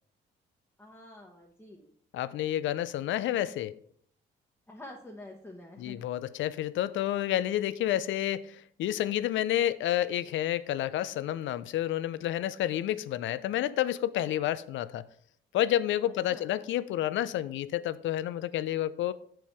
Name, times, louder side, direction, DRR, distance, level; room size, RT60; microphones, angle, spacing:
voice 1, 0.8-1.9 4.7-6.0 16.0-16.5, left 1 dB, 10° left, 1.1 m, -48 dB
voice 2, 2.1-3.8 5.8-15.0 15.5-19.1, left 12 dB, 75° left, 0.4 m, -30 dB
7.2 x 4.5 x 4.7 m
cardioid pair, 90°, 20 cm